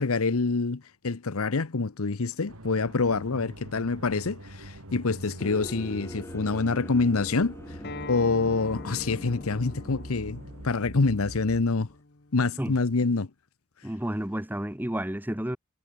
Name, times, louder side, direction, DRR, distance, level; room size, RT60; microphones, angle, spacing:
voice 1, 0.0-7.5 8.1-11.9 12.3-13.3, left 3 dB, 85° left, 0.9 m, -26 dB
sound 1, 2.5-11.6, right 1 dB, 85° right, 6.8 m, -44 dB
sound 2, 5.4-12.0, left 1 dB, 10° left, 1.8 m, -44 dB
Acoustic guitar, 7.8-13.0, left 3 dB, 50° left, 1.5 m, -43 dB
voice 2, 13.8-15.6, right 1 dB, 10° right, 1.2 m, -31 dB
head